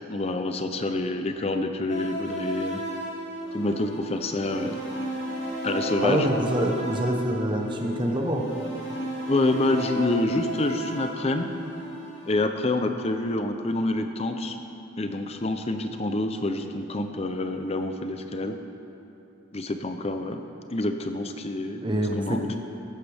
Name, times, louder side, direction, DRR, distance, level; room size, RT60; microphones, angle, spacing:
voice 1, 0.1-2.8 3.5-4.8 5.6-6.5 9.3-11.5 12.3-14.6 15.0-18.6 19.5-20.4 20.7-21.8 22.2-22.6, left 2 dB, 30° left, 7 dB, 0.6 m, -27 dB
sound 1, 1.9-12.3, right 1 dB, 55° left, 3.4 m, -34 dB
voice 2, 6.0-8.4 21.8-22.6, right 1 dB, 25° right, 1 dB, 1.0 m, -26 dB
15.0 x 13.0 x 3.5 m, 2.9 s
head